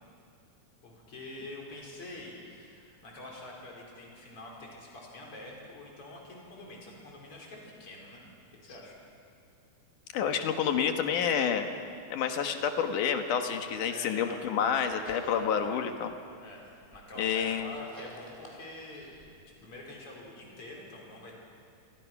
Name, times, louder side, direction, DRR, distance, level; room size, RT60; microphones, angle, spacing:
voice 1, 0.8-8.3 8.6-9.0 13.9-14.9 15.1-15.8 16.4-16.7 16.9-19.1 19.5-21.3, left 2 dB, 45° left, -2 dB, 5.4 m, -46 dB
voice 2, 10.1-11.7 12.1-16.1 17.2-17.7, left 7 dB, 75° left, 6 dB, 2.9 m, -29 dB
sound 1, 14.5-15.6 16.1-19.3, left 1 dB, 10° left, 4.0 m, -54 dB
28.5 x 23.5 x 6.0 m, 2.4 s
omnidirectional pair, 3.6 m